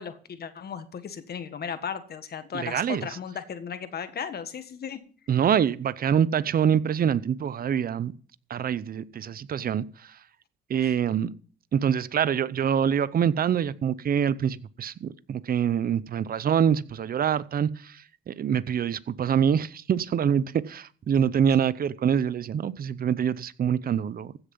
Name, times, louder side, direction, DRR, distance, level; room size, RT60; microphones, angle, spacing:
voice 1, 0.0-5.0 10.8-10.9, left 7 dB, 55° left, 1.6 m, -36 dB
voice 2, 2.5-3.1 5.3-8.1 8.5-10.2 10.7-11.3 11.7-24.3, right 8 dB, 50° right, 0.7 m, -25 dB
15.5 x 6.9 x 5.4 m
cardioid pair, 90°, 20 cm